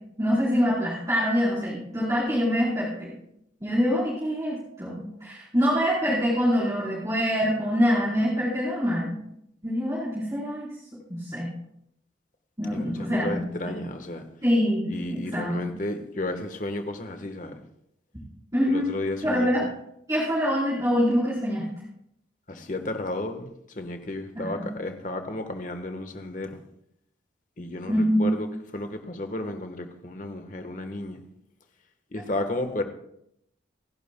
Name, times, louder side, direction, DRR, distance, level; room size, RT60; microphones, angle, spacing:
voice 1, 0.2-3.1 3.6-9.2 9.6-10.7 11.1-11.5 12.6-13.7 14.4-15.7 18.5-18.9 19.2-19.6 20.1-21.7 24.3-24.7 27.9-28.3, equal, 20° right, -9 dB, 4.1 m, -25 dB
voice 2, 12.7-14.2 14.9-17.6 18.7-19.5 22.5-26.6 27.6-28.5 28.7-31.2 32.1-32.8, left 1 dB, 45° left, 7 dB, 1.3 m, -33 dB
28.0 x 11.0 x 2.3 m, 0.75 s
head